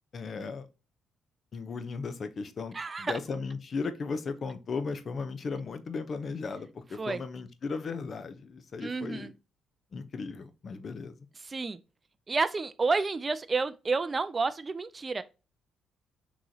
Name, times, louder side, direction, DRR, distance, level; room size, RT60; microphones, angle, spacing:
voice 1, 0.1-0.7 1.5-9.3 9.9-11.1, left 4 dB, 45° left, 0.6 m, -36 dB
voice 2, 2.7-3.2 7.0-7.2 8.8-9.3 11.4-11.8 12.3-15.2, right 4 dB, 30° right, 0.3 m, -30 dB
6.2 x 3.0 x 2.7 m
cardioid pair, 90°, 0 cm